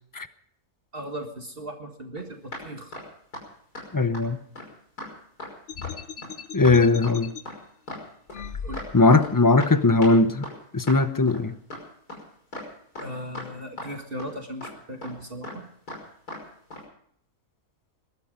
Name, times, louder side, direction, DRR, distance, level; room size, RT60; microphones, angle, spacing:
voice 1, 0.9-2.9 8.6-8.8 13.0-15.6, equal, 40° right, 1.9 m, -37 dB
sound 1, 2.2-2.3 2.5-2.6 2.9-3.1 3.3-3.4 3.7-3.9 4.1-4.2 4.5-4.7 5.0-5.1 5.4-5.5 5.8-5.9 6.2-6.3 6.6-6.7 7.0-7.1 7.4-7.6 7.9-8.0 8.3-8.9 9.1-9.3 9.6-9.7 10.0-10.1 10.4-10.6 10.9-11.0 11.3-11.4 11.7-11.8 12.1-12.2 12.5-12.7 12.9-13.1 13.3-13.5 13.8-13.9 14.2-14.3 14.6-14.7 15.0-15.1 15.4-15.6 15.9-16.0 16.3-16.4 16.7-16.8, left 1 dB, 85° left, 6.2 m, -37 dB
voice 2, 3.9-4.4 6.5-7.3 8.9-10.5 10.7-11.6, left 3 dB, 25° left, 0.4 m, -19 dB
sound 2, 5.7-7.4 8.3-9.2, left 7 dB, 55° left, 1.1 m, -37 dB
21.0 x 13.0 x 5.1 m
omnidirectional pair, 1.6 m